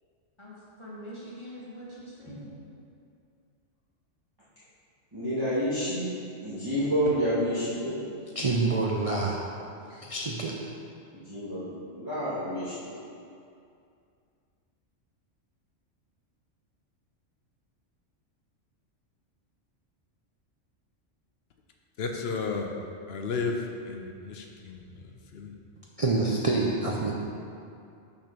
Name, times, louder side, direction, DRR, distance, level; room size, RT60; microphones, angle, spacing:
voice 1, 0.8-2.6, equal, 25° left, -7 dB, 1.4 m, -43 dB
voice 2, 5.1-6.1 6.4-8.0 9.9-10.0 11.1-13.0, equal, 20° right, -15 dB, 1.8 m, -29 dB
voice 3, 8.3-9.4 9.9-10.5 26.0-27.1, right 3 dB, 50° right, -2 dB, 0.4 m, -27 dB
voice 4, 22.0-22.7 23.1-25.5, left 4 dB, 60° left, 2 dB, 0.8 m, -33 dB
6.1 x 4.3 x 5.8 m, 2.5 s
omnidirectional pair, 1.3 m